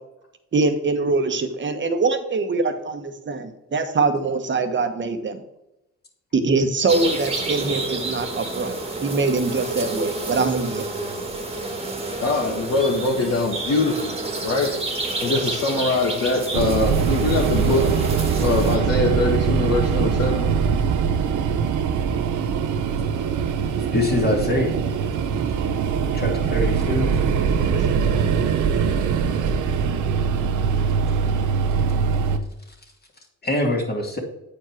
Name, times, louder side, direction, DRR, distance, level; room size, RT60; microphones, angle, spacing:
voice 1, 0.5-5.4 6.3-10.9, right 3 dB, 40° right, 7 dB, 1.2 m, -23 dB
sound 1, 6.9-18.8, right 2 dB, 20° right, 1.7 m, -29 dB
voice 2, 12.1-14.2 14.4-14.8 15.2-17.9 18.4-20.5, left 3 dB, 55° left, -2 dB, 1.6 m, -23 dB
sound 2, 16.5-32.4, right 6 dB, 75° right, 0.9 m, -22 dB
voice 3, 23.9-24.8 26.1-27.2 33.4-34.2, left 1 dB, 30° left, 0 dB, 2.2 m, -23 dB
8.5 x 4.9 x 4.6 m, 0.89 s
cardioid pair, 90°, 30 cm